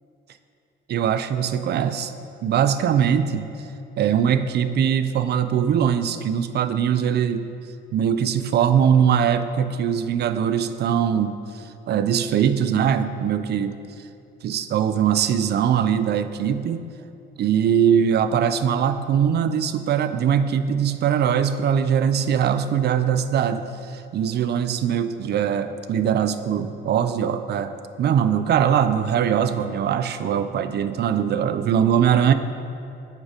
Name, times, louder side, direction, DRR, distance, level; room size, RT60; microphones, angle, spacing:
voice 1, 0.9-2.1 2.4-3.5 4.0-7.5 7.9-13.8 14.4-16.8 17.4-27.7 28.0-32.3, right 8 dB, 55° right, 11 dB, 0.4 m, -21 dB
6.4 x 4.8 x 5.0 m, 2.7 s
cardioid pair, 90°, 20 cm